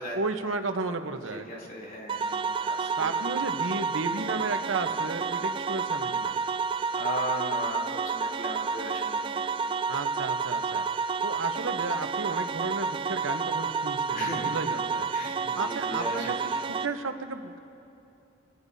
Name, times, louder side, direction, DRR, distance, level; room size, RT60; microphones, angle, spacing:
voice 1, 0.1-1.5 3.0-6.4 9.9-10.9 11.2-15.1 15.5-17.6, right 3 dB, 85° right, 7 dB, 1.0 m, -33 dB
voice 2, 1.3-3.1 6.9-9.4 14.1-14.7 15.1-16.5, equal, 45° left, -3 dB, 3.2 m, -37 dB
Fake Mandolin, 2.1-16.9, right 5 dB, 25° right, 0.3 m, -30 dB
27.5 x 18.5 x 2.8 m, 2.7 s
head